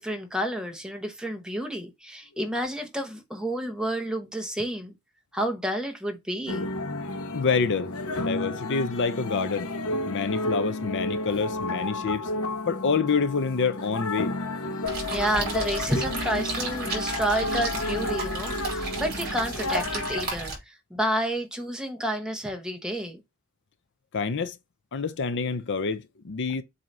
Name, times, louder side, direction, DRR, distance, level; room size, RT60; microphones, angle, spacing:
voice 1, 0.0-4.9 5.3-6.7 15.1-23.2, right 1 dB, 5° right, 1.0 m, -30 dB
sound 1, 6.5-20.3, left 2 dB, 70° left, 1.1 m, -32 dB
voice 2, 7.3-7.9 8.2-9.7 10.1-12.3 12.7-14.3 24.1-24.6 24.9-26.6, left 5 dB, 55° left, 0.6 m, -27 dB
sound 2, 14.8-20.6, right 3 dB, 45° right, 3.7 m, -33 dB
7.7 x 2.8 x 5.4 m
head